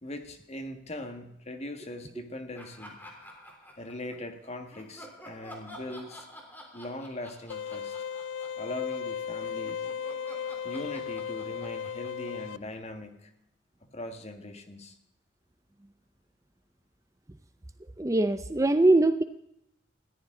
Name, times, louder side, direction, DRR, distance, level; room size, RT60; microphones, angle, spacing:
voice 1, 0.0-3.0 3.8-6.3 6.7-8.0 8.6-9.8 10.6-13.3 13.9-15.0, left 1 dB, 35° left, 6 dB, 1.8 m, -40 dB
Laughter, 2.5-4.3 4.7-9.1 9.4-13.0, equal, 10° left, 3.5 m, -49 dB
sound 1, 7.5-12.6, left 7 dB, 85° left, 0.4 m, -36 dB
voice 2, 18.0-19.2, right 2 dB, 15° right, 10 dB, 0.6 m, -22 dB
20.0 x 14.0 x 3.9 m, 0.80 s
head